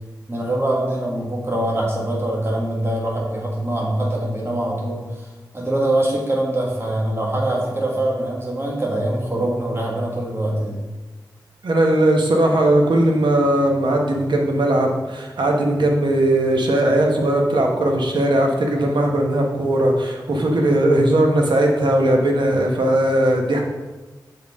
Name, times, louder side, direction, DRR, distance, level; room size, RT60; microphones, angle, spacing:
voice 1, 0.3-5.3 5.5-10.8 18.7-19.1, right 1 dB, 30° right, -2 dB, 1.6 m, -23 dB
voice 2, 11.6-23.6, right 1 dB, 80° right, 1 dB, 1.0 m, -18 dB
6.7 x 4.3 x 3.6 m, 1.2 s
wide cardioid pair, 65°, 8 cm